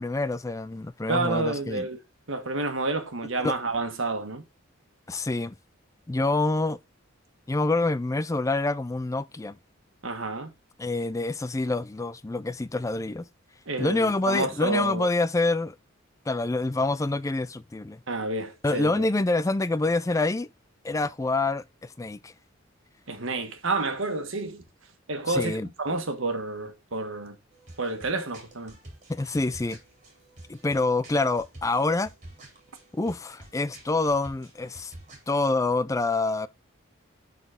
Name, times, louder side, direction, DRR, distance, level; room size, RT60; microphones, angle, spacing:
voice 1, 0.0-1.9 3.4-3.6 5.1-5.6 6.1-6.8 7.5-9.6 10.8-13.3 13.8-15.8 16.3-18.0 18.6-20.5 20.8-22.3 25.3-25.7 29.1-29.8 30.5-32.1 32.9-34.9 35.3-36.5, left 2 dB, 15° left, 0.4 m, -26 dB
voice 2, 1.1-2.0 2.3-4.4 10.0-10.5 13.7-15.1 18.1-19.0 23.1-24.6 25.1-27.4 27.8-28.8, right 3 dB, 70° right, 1.5 m, -29 dB
sound 1, 27.5-35.5, right 1 dB, 35° right, 3.1 m, -49 dB
11.0 x 4.2 x 3.8 m
head